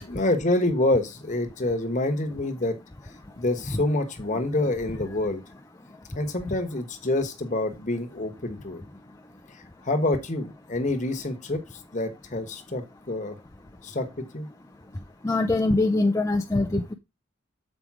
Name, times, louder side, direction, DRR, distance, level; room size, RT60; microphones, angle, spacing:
voice 1, 0.0-2.8 3.4-5.4 6.1-8.8 9.5-11.6 11.9-13.4 13.8-14.5, left 2 dB, 35° left, 6 dB, 1.2 m, -27 dB
voice 2, 15.2-16.9, left 2 dB, 15° left, 4 dB, 0.4 m, -23 dB
7.4 x 5.1 x 4.7 m, 0.24 s
head